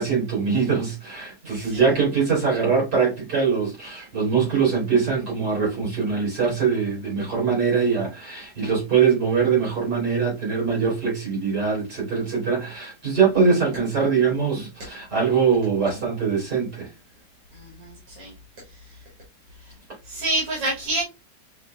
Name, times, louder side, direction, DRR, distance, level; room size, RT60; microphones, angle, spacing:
voice 1, 0.0-16.9, right 5 dB, 65° right, 3.4 m, -22 dB
voice 2, 17.5-18.3 18.7-19.0 19.6-19.7 20.0-21.0, right 1 dB, 80° right, 2.1 m, -28 dB
5.9 x 2.6 x 2.2 m
omnidirectional pair, 1.9 m